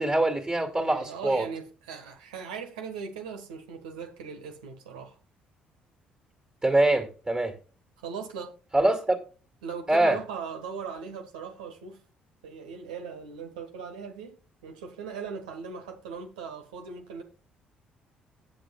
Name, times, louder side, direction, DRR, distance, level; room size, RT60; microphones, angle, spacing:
voice 1, 0.0-1.5 6.6-7.5 8.7-9.2 9.9-10.2, right 1 dB, 20° right, 2.3 m, -24 dB
voice 2, 0.9-5.2 8.0-8.5 9.6-12.0 12.4-17.2, right 6 dB, 75° right, 1.5 m, -39 dB
16.5 x 7.6 x 2.4 m
figure-of-eight pair, 50°, 4 cm